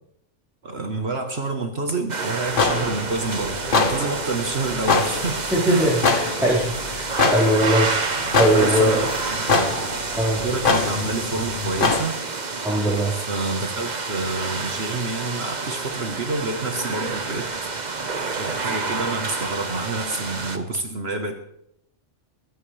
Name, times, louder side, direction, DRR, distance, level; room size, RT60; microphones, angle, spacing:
voice 1, 0.6-6.0 8.5-9.8 10.4-12.1 13.1-17.7 18.3-21.4, right 3 dB, 60° right, 4 dB, 1.6 m, -28 dB
sound 1, 2.1-20.6, right 3 dB, 40° right, 1.2 m, -29 dB
sound 2, 2.5-12.0, left 4 dB, 45° left, 1.3 m, -25 dB
voice 2, 5.5-9.0 10.1-10.4 12.6-13.1, right 1 dB, ahead, -10 dB, 4.7 m, -21 dB
22.0 x 14.0 x 3.4 m, 0.77 s
omnidirectional pair, 1.3 m